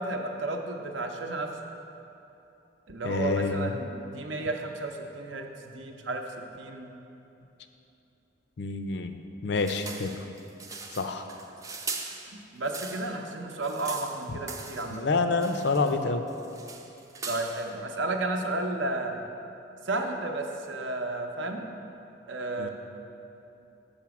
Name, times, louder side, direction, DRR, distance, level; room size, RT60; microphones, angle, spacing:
voice 1, 0.0-1.5 2.9-6.3 6.6-6.9 12.5-15.1 17.3-19.2 19.9-21.6 22.3-22.7, right 2 dB, 75° right, 3 dB, 0.7 m, -32 dB
voice 2, 3.0-3.8 8.6-9.2 9.4-10.2 10.9-11.2 14.3-14.4 14.9-16.2 22.6-22.7, left 3 dB, 60° left, 7 dB, 0.5 m, -28 dB
sound 1, 9.6-13.2 13.5-15.0 15.4-16.0 16.3-17.8, right 4 dB, 15° right, 0.4 m, -40 dB
7.2 x 5.0 x 5.9 m, 2.9 s
head